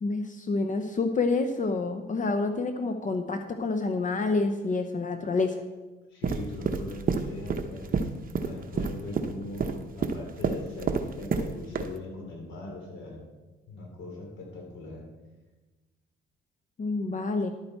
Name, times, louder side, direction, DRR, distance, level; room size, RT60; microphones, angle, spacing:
voice 1, 0.0-5.6 16.8-17.5, left 3 dB, 40° left, 7 dB, 0.9 m, -28 dB
voice 2, 6.1-7.9 8.4-13.2 13.7-15.0, left 2 dB, 70° left, 0 dB, 3.7 m, -40 dB
sound 1, 6.2-11.5 11.8-11.9, right 5 dB, 45° right, 0.9 m, -28 dB
11.5 x 8.7 x 4.5 m, 1.2 s
cardioid pair, 90°, 20 cm